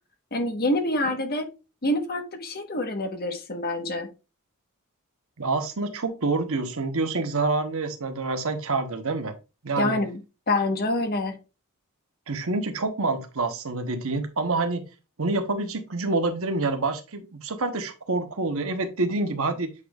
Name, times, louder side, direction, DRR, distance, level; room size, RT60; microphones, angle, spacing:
voice 1, 0.3-1.5 1.8-4.1 9.8-10.2 10.5-11.4, left 1 dB, 45° left, 5 dB, 1.2 m, -26 dB
voice 2, 5.4-9.3 9.6-10.0 12.3-14.9 15.2-19.7, right 3 dB, 65° right, 7 dB, 1.0 m, -27 dB
8.4 x 5.1 x 2.4 m, 0.29 s
head